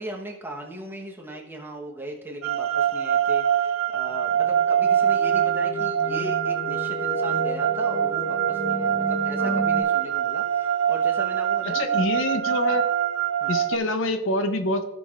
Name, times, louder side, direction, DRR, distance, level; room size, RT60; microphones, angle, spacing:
voice 1, 0.0-12.1 13.4-13.6, right 1 dB, 10° right, 0 dB, 1.0 m, -38 dB
sound 1, 2.4-13.8, right 9 dB, 80° right, 0.4 m, -24 dB
sound 2, 4.4-9.8, left 1 dB, 85° left, 2.3 m, -32 dB
voice 2, 11.7-12.8 13.5-14.8, left 2 dB, 65° left, 8 dB, 0.7 m, -26 dB
16.0 x 6.1 x 2.4 m, 1.1 s
head